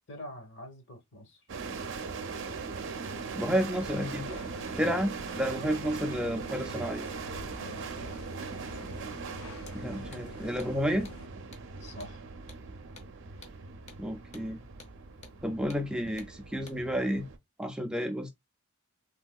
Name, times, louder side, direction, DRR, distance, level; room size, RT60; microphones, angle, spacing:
voice 1, 0.1-1.5 4.7-5.0 5.6-5.8 7.6-8.3 11.8-12.2, left 1 dB, 60° left, 1.0 m, -46 dB
sound 1, 1.5-17.4, right 4 dB, 60° right, 0.5 m, -40 dB
voice 2, 3.4-4.4 4.8-7.1 9.7-11.1 14.0-14.6 15.4-17.2 17.6-18.3, equal, 5° right, 0.3 m, -31 dB
sound 2, 3.8-11.3, left 3 dB, 75° left, 0.4 m, -49 dB
Hammer, 9.6-9.8 10.1-10.3 10.6-10.7 11.0-11.2 11.5-11.7 12.0-12.1 12.5-12.6 13.0-13.1 13.4-13.6 13.9-14.0 14.3-14.5 14.8-14.9 15.2-15.4 15.7-15.8 16.2-16.3 16.7-16.8, left 3 dB, 35° left, 0.7 m, -52 dB
3.4 x 2.7 x 2.2 m
head